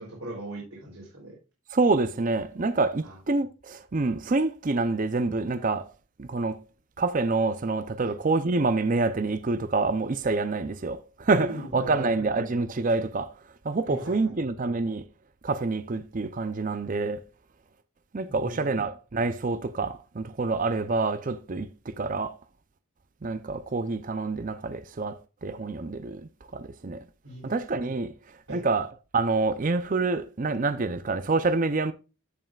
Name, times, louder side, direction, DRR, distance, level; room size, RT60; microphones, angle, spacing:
voice 1, 0.0-1.3 3.0-3.1 8.0-8.1 11.3-12.5 13.9-14.3 18.3-18.8 27.2-27.5 28.5-28.6, right 1 dB, 75° right, 3.2 m, -39 dB
voice 2, 1.7-5.9 6.2-6.6 7.0-13.3 13.6-15.1 15.4-17.2 18.1-22.3 23.2-27.0 27.4-28.9 29.1-31.9, right 3 dB, 35° right, 0.5 m, -27 dB
14.5 x 5.5 x 2.4 m
head